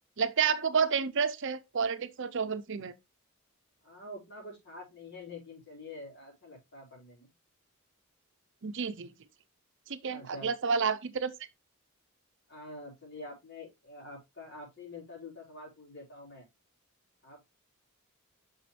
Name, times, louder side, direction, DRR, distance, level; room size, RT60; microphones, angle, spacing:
voice 1, 0.2-2.9 8.6-9.1 9.9-11.3, right 6 dB, 60° right, 0.7 m, -30 dB
voice 2, 3.8-7.3 10.1-10.5 12.5-16.5 17.2-17.4, left 2 dB, 50° left, 4.8 m, -46 dB
7.2 x 6.1 x 3.2 m
head